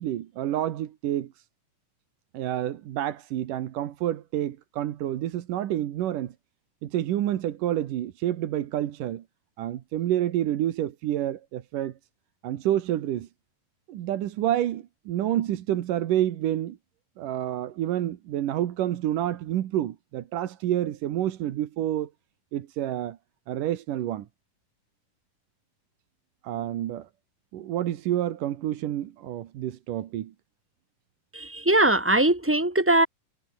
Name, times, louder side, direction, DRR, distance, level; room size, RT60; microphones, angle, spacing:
voice 1, 0.0-1.4 2.3-6.3 6.8-9.2 9.6-11.9 12.4-13.3 13.9-16.8 17.2-22.1 22.5-23.2 23.5-24.3 26.4-27.1 27.5-30.3, right 12 dB, 70° right, 2.8 m, -28 dB
voice 2, 31.3-33.1, right 1 dB, 5° right, 2.3 m, -21 dB
omnidirectional pair, 4.1 m